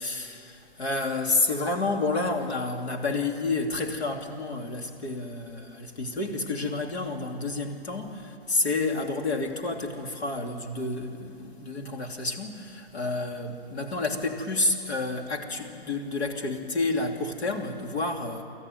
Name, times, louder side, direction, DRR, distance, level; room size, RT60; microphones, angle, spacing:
voice 1, 0.0-18.4, left 3 dB, 85° left, 3 dB, 3.1 m, -30 dB
29.0 x 13.5 x 9.2 m, 2.7 s
hypercardioid pair, 165°, 32 cm